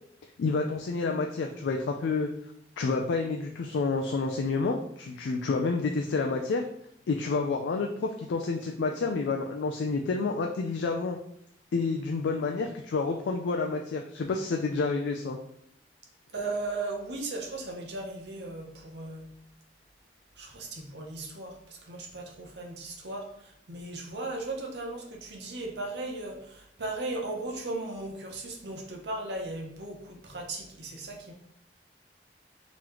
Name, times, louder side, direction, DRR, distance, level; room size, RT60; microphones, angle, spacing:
voice 1, 0.4-2.3 2.8-6.6 7.1-11.2 11.7-15.4, left 4 dB, 85° left, 3 dB, 0.4 m, -29 dB
voice 2, 16.3-19.3 20.4-31.3, right 2 dB, 75° right, 1 dB, 0.8 m, -37 dB
3.8 x 3.1 x 3.0 m, 0.70 s
head